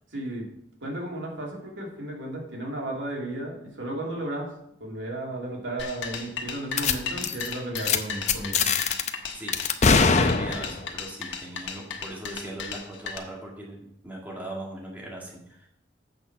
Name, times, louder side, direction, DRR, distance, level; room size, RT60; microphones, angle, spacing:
voice 1, 0.1-0.5 0.8-4.5 4.8-8.8, right 1 dB, 90° right, -1 dB, 2.6 m, -34 dB
sound 1, 5.8-13.2, left 5 dB, 75° left, 1.2 m, -35 dB
sound 2, 6.8-6.9 7.2-7.5 7.8-8.0 8.3-9.1 9.5-10.9, left 5 dB, 40° left, 0.6 m, -22 dB
voice 2, 10.0-15.7, right 1 dB, 10° right, -3 dB, 1.9 m, -39 dB
7.8 x 6.2 x 5.9 m, 0.74 s
head